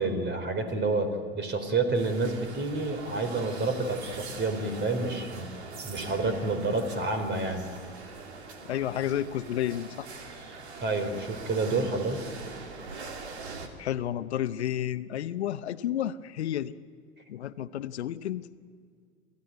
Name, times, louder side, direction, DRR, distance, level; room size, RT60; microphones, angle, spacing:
voice 1, 0.0-5.5 5.8-7.6 10.8-12.2, right 3 dB, 35° right, 8 dB, 4.1 m, -29 dB
sound 1, 1.9-13.7, right 4 dB, 85° right, 2.6 m, -42 dB
voice 2, 8.7-10.1 13.8-16.7 17.3-18.5, left 11 dB, 85° left, 14 dB, 0.8 m, -31 dB
25.0 x 15.0 x 9.5 m, 2.1 s
hypercardioid pair, 85°, 32 cm